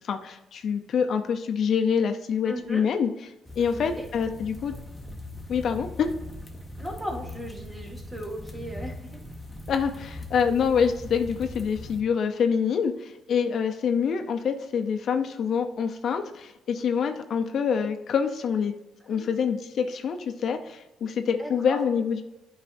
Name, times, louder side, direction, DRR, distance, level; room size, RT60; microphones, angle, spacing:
voice 1, 0.0-3.1 3.6-4.7 5.5-6.1 9.7-18.7 19.1-22.2, left 6 dB, 60° left, 6 dB, 0.5 m, -26 dB
voice 2, 2.5-2.9 3.6-4.1 6.8-9.1 19.0-19.5 21.4-21.8, equal, 10° right, 0 dB, 1.9 m, -37 dB
sound 1, 3.5-12.0, left 1 dB, 5° left, 1.1 m, -40 dB
8.1 x 4.8 x 2.6 m, 0.96 s
cardioid pair, 90°, 0 cm